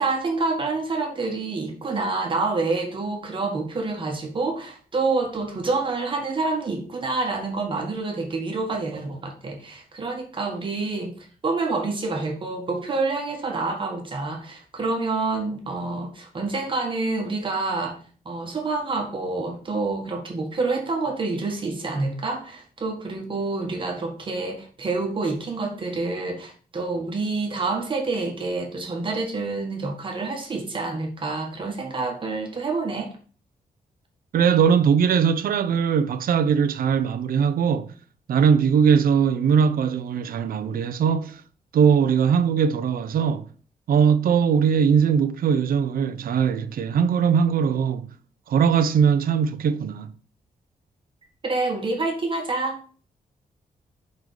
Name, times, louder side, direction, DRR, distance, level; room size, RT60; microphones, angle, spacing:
voice 1, 0.0-18.0 18.2-33.1 51.4-52.8, right 3 dB, 35° right, 1.7 m, -27 dB
voice 2, 34.3-37.9 38.3-41.4 41.7-43.5 43.9-48.1 48.5-50.1, right 7 dB, 75° right, 0.7 m, -20 dB
5.5 x 5.0 x 6.3 m
wide cardioid pair, 150°, 15 cm